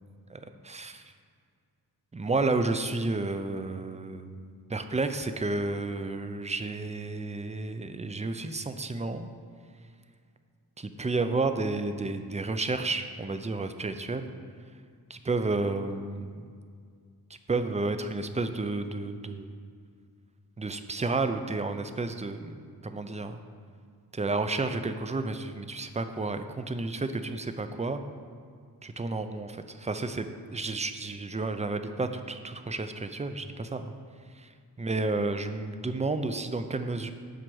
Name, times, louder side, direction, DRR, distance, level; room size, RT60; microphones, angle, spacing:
voice 1, 0.3-1.0 2.1-4.4 4.7-9.3 10.8-14.3 15.1-16.5 17.5-19.5 20.6-23.4 24.1-28.0 28.8-33.9 34.4-34.5 34.8-37.1, right 3 dB, 20° right, 8 dB, 0.4 m, -31 dB
7.5 x 5.1 x 6.3 m, 2.1 s
wide cardioid pair, 90°, 40 cm